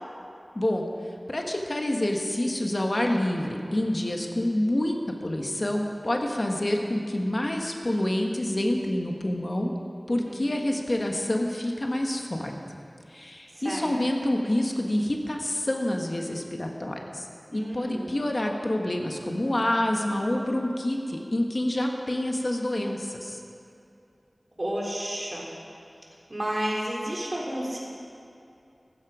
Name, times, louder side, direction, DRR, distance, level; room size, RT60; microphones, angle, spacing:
voice 1, 1.3-5.0 5.2-9.7 10.1-12.5 13.1-17.3 17.5-23.4, left 1 dB, 50° left, 2 dB, 1.5 m, -27 dB
voice 2, 13.5-13.9 17.5-18.1 24.6-25.5 26.3-27.8, right 1 dB, 45° right, -3 dB, 3.5 m, -31 dB
15.0 x 13.5 x 5.0 m, 2.6 s
wide cardioid pair, 50°, 0 cm